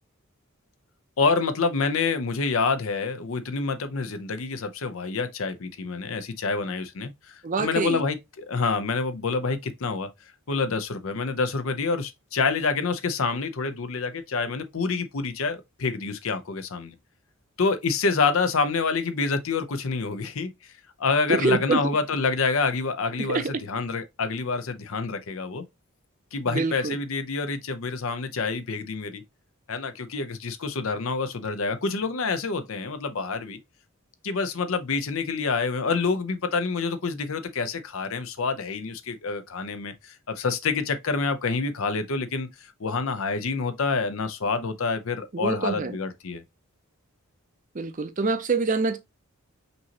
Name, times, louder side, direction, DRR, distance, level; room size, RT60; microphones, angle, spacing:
voice 1, 1.2-10.1 10.5-16.9 17.6-20.7 21.0-25.6 26.3-29.2 29.7-33.6 34.2-46.4, left 4 dB, 65° left, 0.6 m, -27 dB
voice 2, 7.4-8.0 21.3-21.8 23.2-23.5 26.4-27.0 45.3-46.0 47.7-49.0, right 4 dB, 35° right, 0.5 m, -26 dB
5.3 x 2.9 x 2.8 m
head